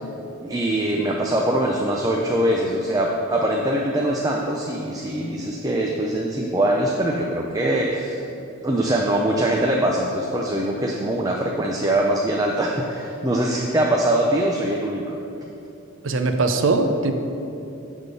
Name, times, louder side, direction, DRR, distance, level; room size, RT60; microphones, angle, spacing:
voice 1, 0.4-8.2 8.6-15.2, right 1 dB, 15° right, -1 dB, 0.5 m, -22 dB
voice 2, 16.0-17.1, right 3 dB, 65° right, 6 dB, 0.6 m, -20 dB
9.9 x 3.6 x 6.8 m, 2.8 s
head